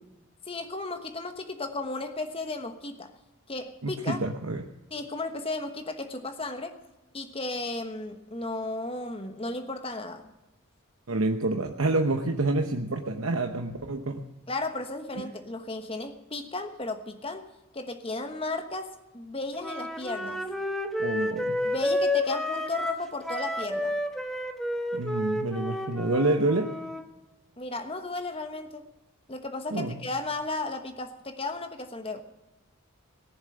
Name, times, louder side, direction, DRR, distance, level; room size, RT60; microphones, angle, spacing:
voice 1, 0.5-3.1 3.5-4.2 4.9-6.8 7.1-10.3 14.5-17.4 17.7-20.4 21.6-23.9 27.6-28.9 29.3-32.2, left 2 dB, 25° left, 7 dB, 1.2 m, -34 dB
voice 2, 3.8-4.6 11.1-14.2 15.2-15.3 21.0-21.6 24.9-26.7 29.7-30.0, right 2 dB, 75° right, 5 dB, 0.9 m, -28 dB
Wind instrument woodwind instrument, 19.6-27.0, left 1 dB, ahead, 1.1 m, -30 dB
19.0 x 7.2 x 7.7 m, 1.0 s
head